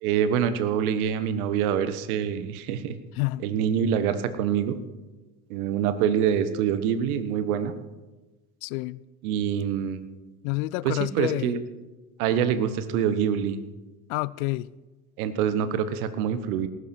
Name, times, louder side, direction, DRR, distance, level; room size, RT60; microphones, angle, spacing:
voice 1, 0.0-2.9 3.4-4.8 5.5-7.7 9.2-10.0 10.8-11.6 12.2-13.6 15.2-16.7, right 8 dB, 70° right, 1.4 m, -25 dB
voice 2, 3.2-3.5 8.6-9.0 10.4-11.6 14.1-14.7, left 20 dB, 65° left, 0.6 m, -28 dB
19.5 x 11.5 x 4.5 m
hypercardioid pair, 70°, 45 cm